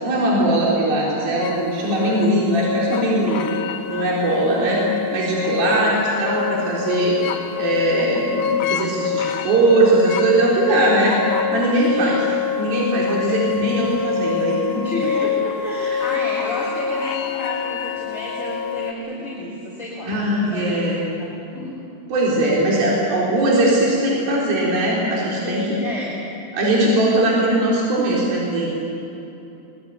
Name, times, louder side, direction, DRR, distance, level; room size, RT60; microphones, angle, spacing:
voice 1, 0.0-3.5 3.9-4.8 5.1-7.2 7.6-11.2 11.5-12.2 12.6-15.1 15.6-16.2 20.0-21.0 22.1-25.7 26.5-28.7, right 1 dB, 65° right, -5 dB, 5.5 m, -20 dB
sound 1, 1.4-18.9, left 8 dB, 65° left, 2.3 m, -26 dB
voice 2, 5.5-5.9 11.9-12.2 13.3-13.4 14.8-20.8 21.2-21.8 25.4-26.1, left 1 dB, 20° left, -6 dB, 3.4 m, -32 dB
22.0 x 22.0 x 8.8 m, 2.9 s
omnidirectional pair, 4.6 m